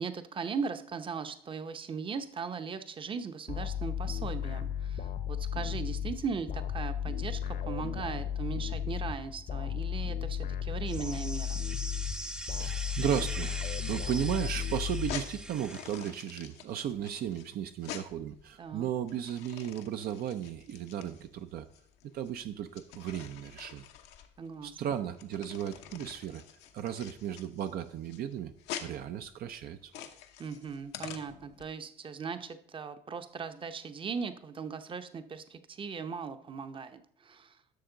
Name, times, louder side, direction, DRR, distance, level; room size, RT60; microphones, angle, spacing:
voice 1, 0.0-11.6 18.6-18.9 24.4-24.8 30.4-37.6, right 5 dB, 30° right, 9 dB, 0.8 m, -38 dB
sound 1, 3.5-15.7, left 9 dB, 50° left, 0.9 m, -35 dB
sound 2, 10.9-16.1, right 1 dB, 5° right, 0.5 m, -41 dB
voice 2, 12.6-21.7 22.1-23.9 24.6-26.4 26.7-28.5 28.8-29.9, right 10 dB, 60° right, 8 dB, 0.6 m, -35 dB
sound 3, 14.9-31.6, left 9 dB, 85° left, 1.0 m, -46 dB
11.5 x 6.4 x 3.9 m, 0.66 s
cardioid pair, 105°, 17 cm